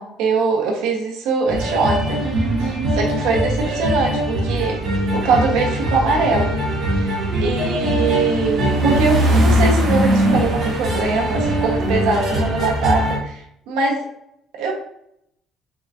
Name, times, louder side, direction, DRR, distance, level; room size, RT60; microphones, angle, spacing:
voice 1, 0.0-2.3 2.6-4.8 5.1-6.5 6.9-14.1 14.5-14.7, right 4 dB, 90° right, 0 dB, 1.2 m, -22 dB
sound 1, 1.5-13.2, right 1 dB, 45° right, 1.7 m, -20 dB
4.9 x 3.8 x 2.7 m, 0.72 s
cardioid pair, 115°, 0 cm